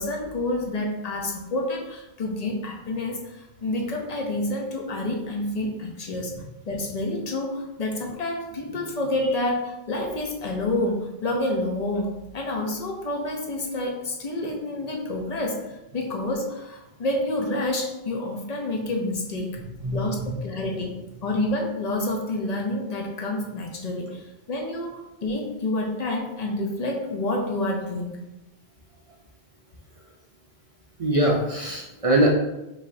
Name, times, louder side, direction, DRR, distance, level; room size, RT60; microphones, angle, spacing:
voice 1, 0.0-6.3 6.6-15.6 15.9-19.6 19.9-28.1, left 1 dB, 40° left, 1 dB, 0.7 m, -28 dB
voice 2, 19.8-20.3 31.0-32.3, right 1 dB, 40° right, -3 dB, 0.5 m, -23 dB
5.1 x 3.2 x 2.7 m, 0.94 s
omnidirectional pair, 1.2 m